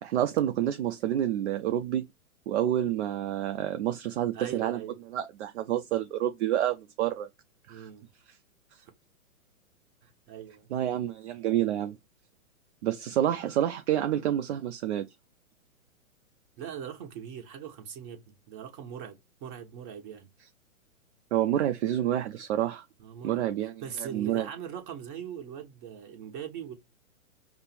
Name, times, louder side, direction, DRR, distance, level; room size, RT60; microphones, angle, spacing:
voice 1, 0.0-2.1 2.5-4.8 5.1-7.3 7.7-7.9 10.7-12.0 12.8-15.1 21.3-22.8 23.2-23.8 24.1-24.5, right 11 dB, 50° right, 0.6 m, -28 dB
voice 2, 4.3-5.0 7.7-8.1 8.8-8.9 10.0-10.7 16.6-20.3 23.0-23.4 23.8-26.7, right 8 dB, 35° right, 1.3 m, -41 dB
5.2 x 2.0 x 4.3 m
hypercardioid pair, 130°, 42 cm